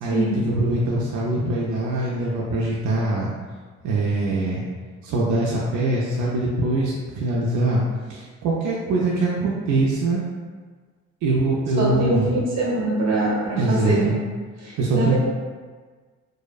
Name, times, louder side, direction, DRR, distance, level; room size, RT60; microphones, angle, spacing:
voice 1, 0.0-3.3 3.8-4.6 5.0-7.8 8.1-10.2 11.2-12.3 13.6-14.1 14.8-15.2, right 2 dB, 75° right, -5 dB, 0.4 m, -23 dB
voice 2, 11.8-14.1 14.6-15.2, right 2 dB, 60° right, -5 dB, 1.0 m, -24 dB
2.5 x 2.1 x 2.3 m, 1.5 s
cardioid pair, 90°, 30 cm